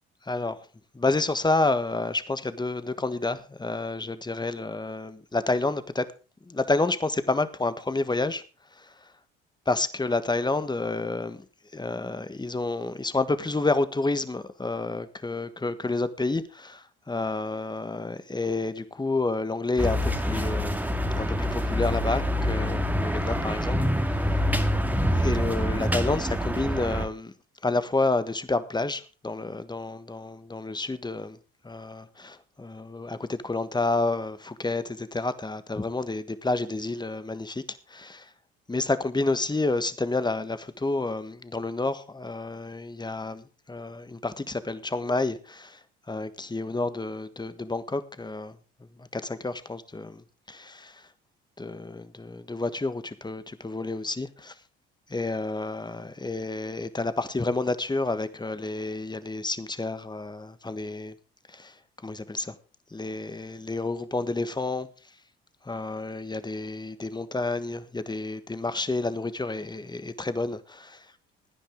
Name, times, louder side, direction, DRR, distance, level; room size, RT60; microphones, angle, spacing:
voice 1, 0.2-0.6 0.9-6.1 6.5-8.4 8.7-8.9 9.7-11.4 11.7-24.4 25.2-27.3 27.6-31.4 31.6-38.3 38.7-45.8 46.1-48.6 49.0-51.1 51.6-54.5 55.1-61.1 61.5-61.7 62.0-62.5 62.9-64.9 65.6-71.0, left 3 dB, 15° left, 1.4 m, -29 dB
sound 1, 19.8-27.1, equal, 5° right, 2.1 m, -26 dB
17.0 x 10.0 x 3.8 m
hypercardioid pair, 60°, 31 cm